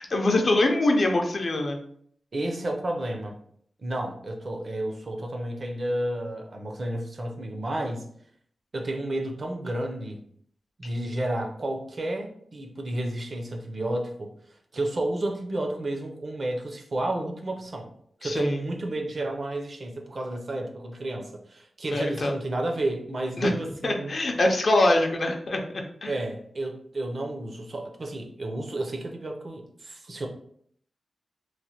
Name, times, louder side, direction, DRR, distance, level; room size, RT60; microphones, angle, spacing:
voice 1, 0.0-1.8 18.2-18.6 21.9-22.3 23.4-23.5 23.8-25.6 26.0-26.1, left 2 dB, 50° left, 2 dB, 0.5 m, -23 dB
voice 2, 2.3-3.4 3.8-8.1 8.7-10.2 10.8-14.3 14.7-17.9 18.2-24.1 26.1-30.3, right 1 dB, 45° right, 3 dB, 0.5 m, -31 dB
3.1 x 2.1 x 2.8 m, 0.64 s
wide cardioid pair, 105°, 0 cm